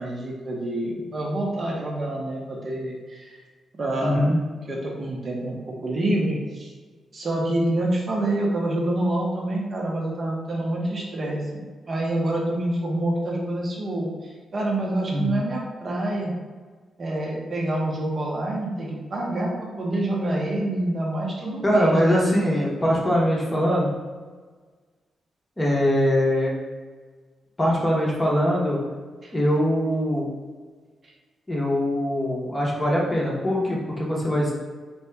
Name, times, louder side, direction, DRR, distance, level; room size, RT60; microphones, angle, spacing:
voice 1, 0.0-3.4 3.8-4.3 4.7-6.7 7.1-16.3 17.0-19.5 19.8-22.3 29.2-29.3, right 1 dB, 30° right, -2 dB, 0.7 m, -27 dB
voice 2, 4.0-4.4 15.1-15.3 21.6-23.9 25.6-26.5 27.6-28.8 29.3-30.3 31.5-34.5, equal, 15° left, -4 dB, 0.8 m, -22 dB
4.3 x 2.8 x 3.4 m, 1.5 s
wide cardioid pair, 175°, 0 cm